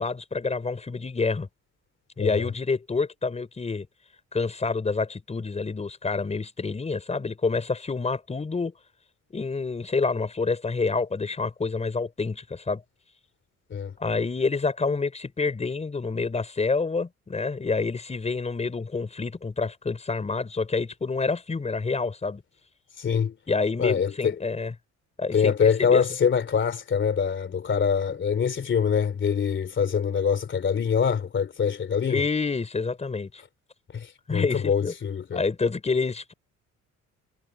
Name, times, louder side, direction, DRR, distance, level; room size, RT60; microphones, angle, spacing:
voice 1, 0.0-1.5 2.2-3.9 4.3-8.7 9.3-12.8 14.0-22.4 23.5-24.7 25.2-26.0 32.1-33.4 34.3-34.9 35.3-36.3, left 4 dB, 20° left, 5.1 m, -28 dB
voice 2, 2.2-2.5 13.7-13.9 23.0-23.3 23.8-24.3 25.3-32.2 33.9-35.4, left 7 dB, 35° left, 3.0 m, -24 dB
cardioid pair, 145°, 32 cm